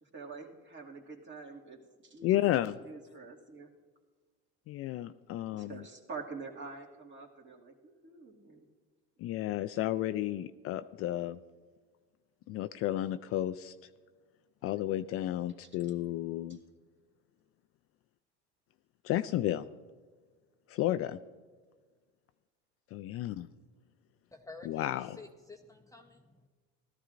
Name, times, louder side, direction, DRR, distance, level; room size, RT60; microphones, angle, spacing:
voice 1, 0.0-3.7 5.5-8.7, right 4 dB, 35° right, 0 dB, 2.2 m, -46 dB
voice 2, 2.2-2.8 4.7-5.8 9.2-11.4 12.5-13.7 14.6-16.6 19.0-19.7 20.7-21.2 22.9-23.5 24.7-25.2, left 13 dB, 45° left, 11 dB, 0.4 m, -32 dB
voice 3, 24.3-26.5, left 3 dB, 10° left, 2 dB, 0.8 m, -51 dB
17.0 x 13.5 x 2.5 m, 1.4 s
supercardioid pair, 105°, 32 cm